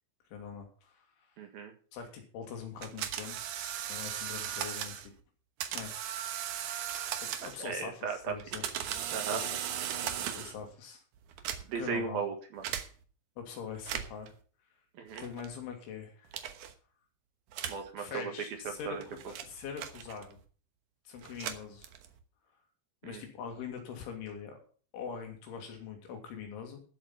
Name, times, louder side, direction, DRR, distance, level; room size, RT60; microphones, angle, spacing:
voice 1, 0.3-1.1 1.9-3.4 3.9-5.0 5.7-5.9 7.2-8.7 9.2-9.6 10.0-11.0 11.4-12.2 13.4-14.3 15.2-16.3 18.0-20.4 21.1-21.9 23.0-24.6 24.9-26.8, left 7 dB, 90° left, 3 dB, 5.2 m, -43 dB
voice 2, 1.4-1.7 7.6-8.3 9.1-9.4 11.6-12.6 15.0-15.2 17.7-18.3 18.9-19.0 23.0-23.2, right 6 dB, 60° right, 5 dB, 3.1 m, -36 dB
sound 1, 2.8-5.1 5.6-7.7 8.3-10.6 11.3-11.9 12.6-12.9 13.8-14.3 15.2-15.5 16.3-16.7 17.5-17.9 18.7-20.4 21.2-22.2, right 10 dB, 85° right, 1.7 m, -37 dB
13.0 x 8.0 x 5.9 m, 0.40 s
omnidirectional pair, 5.3 m